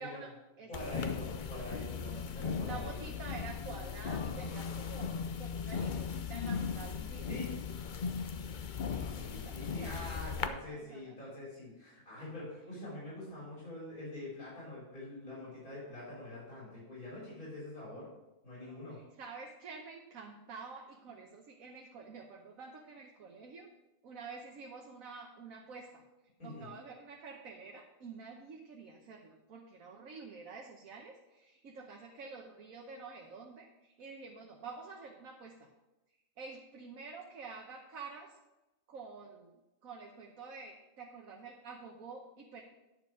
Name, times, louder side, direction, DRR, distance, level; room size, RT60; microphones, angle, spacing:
voice 1, 0.0-0.9 2.6-7.3 8.9-11.2 18.6-23.7 24.0-26.0 26.4-35.7 36.4-38.4 38.9-42.6, right 4 dB, 75° right, 1 dB, 1.4 m, -48 dB
voice 2, 0.7-3.0 7.3-7.5 9.0-18.1 18.4-19.0 26.4-26.7, left 1 dB, 85° left, -7 dB, 4.9 m, -45 dB
sound 1, 0.7-10.5, left 6 dB, 55° left, 0.5 m, -38 dB
10.5 x 6.9 x 4.8 m, 1.0 s
omnidirectional pair, 1.5 m